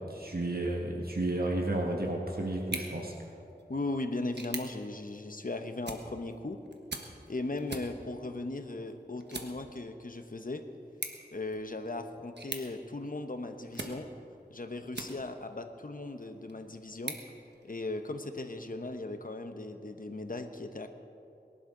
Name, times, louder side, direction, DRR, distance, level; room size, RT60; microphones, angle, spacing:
voice 1, 0.0-3.1, right 1 dB, 60° right, 0 dB, 1.7 m, -32 dB
sound 1, 2.6-15.6 16.1-18.1, right 3 dB, 80° right, 1.3 m, -45 dB
voice 2, 3.7-6.6 7.3-10.6 11.3-14.1 14.5-17.2 17.6-20.9, left 2 dB, 55° left, 7 dB, 1.1 m, -37 dB
22.5 x 11.5 x 3.9 m, 2.7 s
wide cardioid pair, 45°, 17 cm